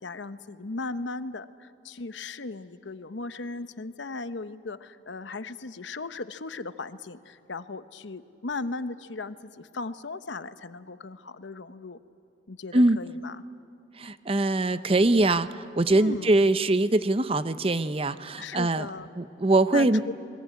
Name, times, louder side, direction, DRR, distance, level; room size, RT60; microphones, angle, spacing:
voice 1, 0.0-12.0 12.5-13.4 15.9-16.3 18.4-19.1 19.7-20.1, left 3 dB, 85° left, 12 dB, 0.9 m, -37 dB
voice 2, 14.0-18.9 19.2-20.0, right 2 dB, 30° right, 13 dB, 0.7 m, -23 dB
29.0 x 21.5 x 9.6 m, 3.0 s
head